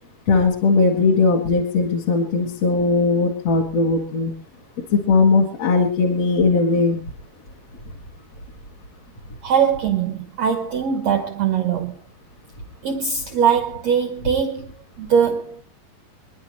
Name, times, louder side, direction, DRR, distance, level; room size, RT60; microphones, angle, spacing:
voice 1, 0.3-4.3 4.9-7.0, left 4 dB, 45° left, 2.7 m, -18 dB
voice 2, 9.4-12.0 12.8-14.7 15.0-15.6, right 7 dB, 80° right, 1.5 m, -21 dB
28.5 x 11.0 x 3.1 m
omnidirectional pair, 4.7 m